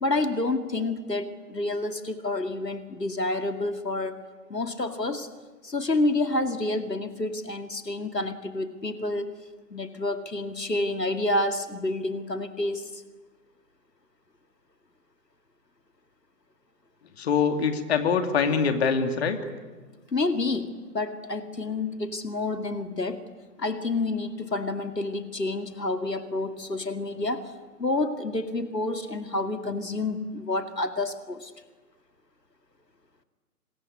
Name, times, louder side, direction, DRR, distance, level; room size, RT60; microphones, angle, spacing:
voice 1, 0.0-4.2 4.5-5.3 5.6-9.3 9.7-13.0 20.1-20.7 20.9-23.2 23.6-27.5 27.8-31.5, left 2 dB, 90° left, 8 dB, 2.4 m, -29 dB
voice 2, 17.2-19.4, left 6 dB, 40° left, 7 dB, 2.6 m, -24 dB
26.0 x 22.0 x 9.7 m, 1.3 s
figure-of-eight pair, 140°, 48 cm